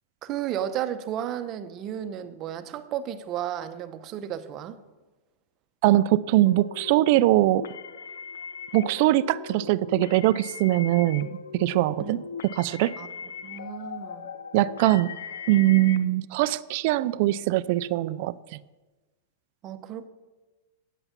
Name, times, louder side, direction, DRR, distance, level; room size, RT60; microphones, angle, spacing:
voice 1, 0.2-4.8 12.0-12.2 13.0-13.1 13.4-14.3 19.6-20.1, right 10 dB, 35° right, 0.7 m, -33 dB
voice 2, 5.8-7.6 8.7-12.2 12.6-12.9 14.5-15.2 15.5-18.3, right 15 dB, 55° right, 0.3 m, -22 dB
sound 1, 6.5-16.0, left 6 dB, 85° left, 0.5 m, -39 dB
8.9 x 7.9 x 6.0 m
hypercardioid pair, 125°, 0 cm